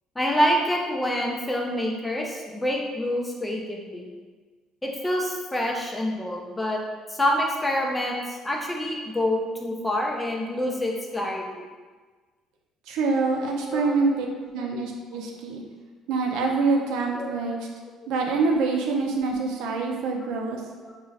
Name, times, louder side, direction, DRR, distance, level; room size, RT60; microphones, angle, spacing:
voice 1, 0.2-4.1 4.8-6.8 7.1-11.6 13.7-13.9 15.1-15.2 17.2-17.3 20.8-20.9, equal, 10° left, 0 dB, 0.4 m, -27 dB
voice 2, 12.9-14.3 14.5-15.6 16.1-17.6 18.1-20.6, right 4 dB, 75° right, 1 dB, 0.5 m, -25 dB
3.6 x 2.4 x 3.2 m, 1.4 s
cardioid pair, 150°, 0 cm